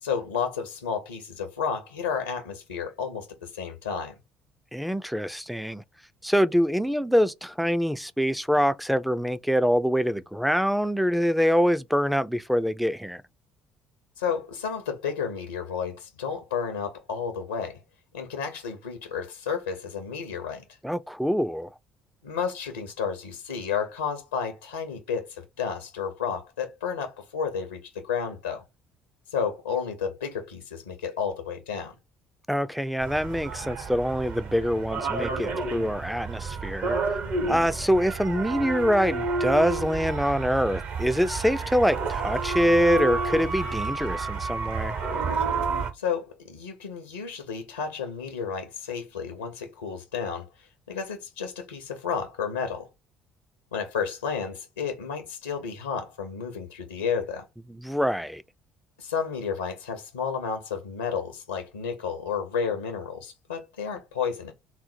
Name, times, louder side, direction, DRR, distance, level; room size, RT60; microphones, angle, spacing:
voice 1, 0.0-4.2 14.2-17.8 18.1-20.6 22.2-28.6 29.3-31.9 45.9-52.9 53.7-57.4 59.0-64.5, left 6 dB, 80° left, 0.6 m, -32 dB
voice 2, 4.7-5.8 6.2-13.2 20.8-21.7 32.5-37.0 37.5-44.9 57.7-58.4, equal, ahead, 0.3 m, -25 dB
sound 1, 33.0-45.9, right 4 dB, 50° right, 0.9 m, -30 dB
4.0 x 2.0 x 4.2 m
figure-of-eight pair, 55°, 4 cm